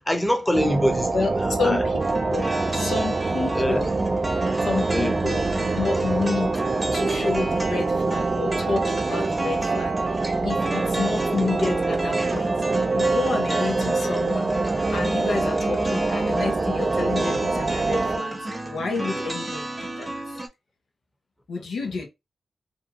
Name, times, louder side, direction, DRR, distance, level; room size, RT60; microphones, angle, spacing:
voice 1, 0.1-1.8 3.5-3.8 4.9-5.2, equal, 15° left, 0.8 m, -24 dB
sound 1, 0.5-18.2, right 3 dB, 50° right, 0.4 m, -25 dB
voice 2, 1.1-2.0 2.3-2.5 2.7-3.9 4.6-6.6 6.9-10.2 10.4-12.5 12.9-14.5 14.9-18.4 18.6-20.1 21.5-22.1, left 4 dB, 80° left, 0.7 m, -29 dB
sound 2, 2.0-20.5, right 2 dB, 20° right, 0.8 m, -32 dB
2.7 x 2.2 x 2.8 m
supercardioid pair, 45°, 0 cm